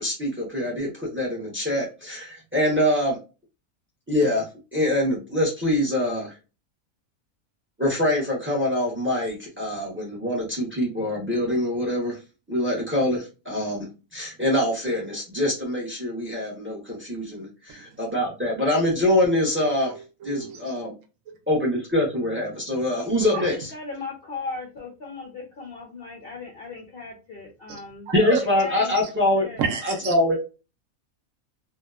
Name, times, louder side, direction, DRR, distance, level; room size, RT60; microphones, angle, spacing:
voice 1, 0.0-3.2 4.1-4.5 4.7-6.3 7.8-12.2 12.5-13.9 14.1-19.9 20.2-20.9 21.5-23.7 28.1-29.5 29.8-30.4, left 1 dB, 20° right, 0.3 m, -24 dB
voice 2, 19.9-20.7 23.3-23.4 28.1-28.4 29.6-30.1, right 6 dB, 70° right, 0.9 m, -30 dB
voice 3, 23.3-29.0 29.3-29.8, left 4 dB, 70° left, 0.5 m, -37 dB
2.7 x 2.1 x 2.3 m
omnidirectional pair, 1.5 m